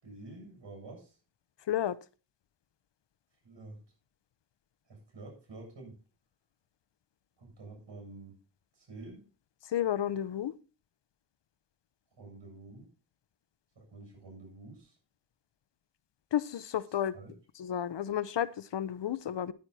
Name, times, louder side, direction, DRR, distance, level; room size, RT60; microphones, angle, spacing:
voice 1, 0.0-1.1 3.4-3.8 4.9-6.0 7.4-8.4 8.8-9.3 12.2-12.9 13.8-15.0 17.1-17.3, right 2 dB, 90° right, 2 dB, 7.4 m, -48 dB
voice 2, 9.7-10.5 16.3-17.1 17.6-19.5, left 10 dB, 90° left, 17 dB, 0.8 m, -31 dB
10.5 x 9.6 x 4.2 m, 0.33 s
wide cardioid pair, 75°, 42 cm